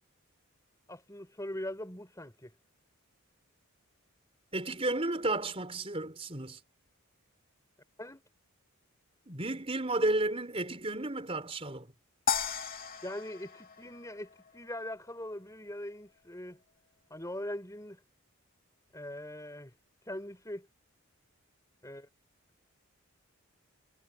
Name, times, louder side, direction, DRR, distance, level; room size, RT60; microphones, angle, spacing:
voice 1, 0.9-2.5 8.0-8.2 13.0-16.6 17.1-18.0 18.9-19.7 20.1-20.7 21.8-22.1, left 1 dB, 15° left, 6.3 m, -41 dB
voice 2, 4.5-6.6 9.3-11.9, right 2 dB, 25° right, 4.7 m, -32 dB
sound 1, 12.3-14.7, left 7 dB, 40° left, 3.2 m, -35 dB
head